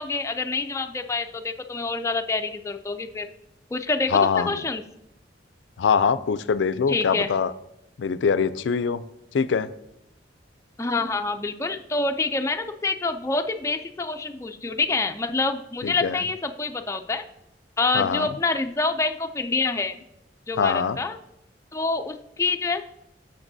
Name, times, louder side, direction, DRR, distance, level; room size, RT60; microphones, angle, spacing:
voice 1, 0.0-3.3 3.7-4.8 6.9-7.3 10.8-17.2 17.8-20.0 20.5-21.2 21.7-22.9, left 3 dB, 15° left, 5 dB, 0.4 m, -27 dB
voice 2, 4.1-4.6 5.8-7.5 8.0-9.0 9.3-9.7 15.8-16.2 17.9-18.3 20.6-21.0, left 6 dB, 90° left, 15 dB, 0.4 m, -23 dB
12.0 x 6.6 x 2.7 m, 0.84 s
head